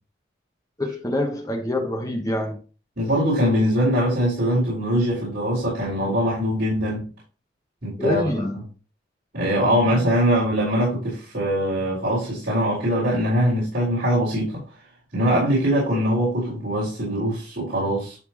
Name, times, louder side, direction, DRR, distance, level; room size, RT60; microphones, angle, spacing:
voice 1, 0.8-2.6 8.0-8.6, left 1 dB, 20° left, 1.1 m, -25 dB
voice 2, 3.0-7.1 7.8-8.2 9.3-14.6 15.1-18.2, equal, 55° right, 4.3 m, -22 dB
11.5 x 4.3 x 3.0 m
head